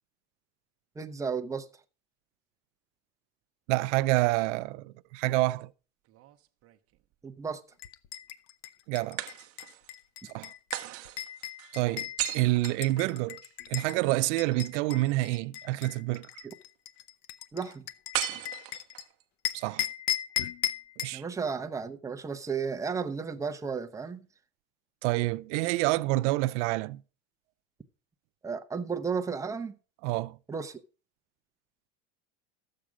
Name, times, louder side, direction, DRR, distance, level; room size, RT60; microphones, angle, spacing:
voice 1, 1.0-1.7 7.2-7.6 17.5-17.9 21.1-24.3 28.4-29.7 30.5-30.8, right 5 dB, 10° right, 0.7 m, -33 dB
voice 2, 3.7-5.7 8.9-9.2 10.2-10.5 11.7-13.4 13.7-16.5 19.5-19.9 21.0-21.2 25.0-27.0 30.0-30.4, right 19 dB, 85° right, 0.6 m, -28 dB
sound 1, 6.1-7.1 9.2-9.9 10.7-13.6 18.1-19.2, right 15 dB, 40° right, 0.9 m, -37 dB
sound 2, 7.8-14.0 14.4-19.0 19.4-21.2, left 12 dB, 70° left, 0.9 m, -37 dB
13.5 x 7.7 x 5.0 m
cardioid pair, 145°, 34 cm